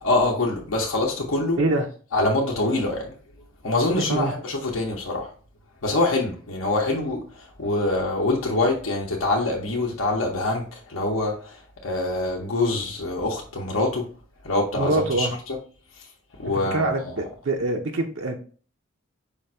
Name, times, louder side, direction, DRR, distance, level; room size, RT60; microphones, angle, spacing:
voice 1, 0.0-1.6 2.1-3.1 3.6-5.3 5.8-14.1 14.4-15.3 16.4-17.0, left 2 dB, 70° left, 0.8 m, -25 dB
voice 2, 4.0-4.3 14.8-15.3 16.4-18.4, right 2 dB, 65° right, 0.6 m, -25 dB
5.1 x 2.5 x 4.2 m
head